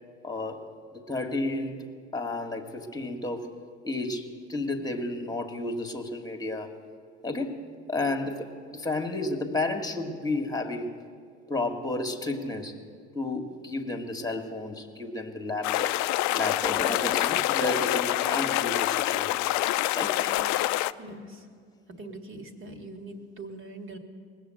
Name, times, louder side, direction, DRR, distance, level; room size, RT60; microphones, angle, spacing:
voice 1, 0.2-0.6 0.9-3.5 3.8-6.8 7.2-10.9 11.5-12.8 13.1-16.0 16.3-19.6 20.0-20.2, left 2 dB, 10° left, 5 dB, 1.7 m, -32 dB
sound 1, 15.6-20.9, left 16 dB, 60° left, 0.4 m, -26 dB
voice 2, 21.0-21.5 21.9-24.0, right 1 dB, 40° right, 5 dB, 2.0 m, -42 dB
19.5 x 7.4 x 7.7 m, 2.1 s
hypercardioid pair, 60°, 32 cm